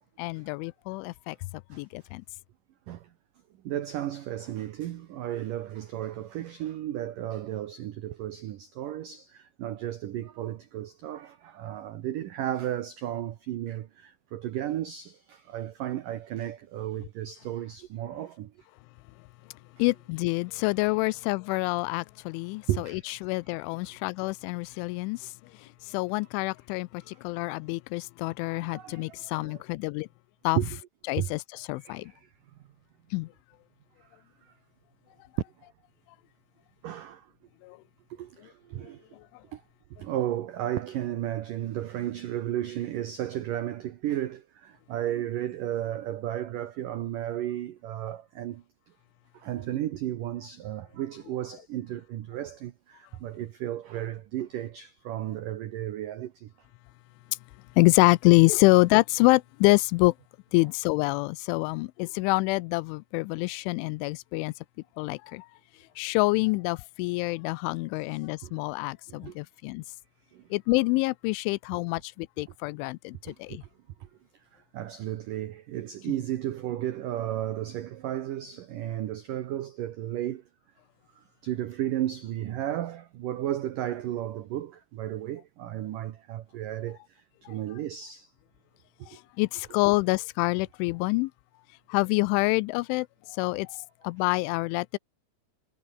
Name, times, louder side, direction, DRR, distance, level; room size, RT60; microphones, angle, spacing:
voice 1, 0.2-1.4 1.7-2.2 19.8-25.3 25.9-30.1 30.4-30.6 31.1-32.1 33.1-33.3 37.6-37.8 57.8-60.1 60.5-64.5 65.0-65.5 66.0-69.8 70.5-73.6 89.1-91.3 91.9-93.1 93.4-93.7 94.0-95.0, left 24 dB, 85° left, 2.9 m, -26 dB
voice 2, 3.6-18.5 22.7-23.0 27.1-27.2 28.5-29.6 30.6-30.8 31.2-31.3 31.8-32.2 36.8-37.3 38.1-39.0 39.5-39.6 40.0-48.6 49.3-56.5 68.4-68.6 69.1-69.4 70.3-70.4 73.3-73.6 74.0-74.1 74.5-80.4 81.4-87.0 87.4-88.3 89.0-89.1, right 12 dB, 85° right, 1.9 m, -34 dB
omnidirectional pair, 5.5 m